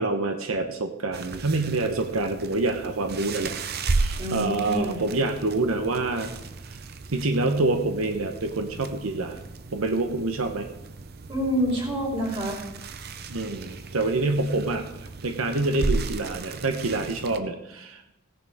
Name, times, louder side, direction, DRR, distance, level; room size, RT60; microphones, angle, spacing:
voice 1, 0.0-3.6 3.9-6.3 7.1-9.4 9.7-10.7 13.3-14.9 15.2-18.0, right 2 dB, 85° right, 6 dB, 1.0 m, -26 dB
sound 1, 1.1-17.4, right 3 dB, 45° right, 0.7 m, -34 dB
voice 2, 4.2-5.1 11.3-12.6, equal, 25° right, -3 dB, 4.0 m, -27 dB
17.0 x 10.5 x 3.6 m, 0.88 s
head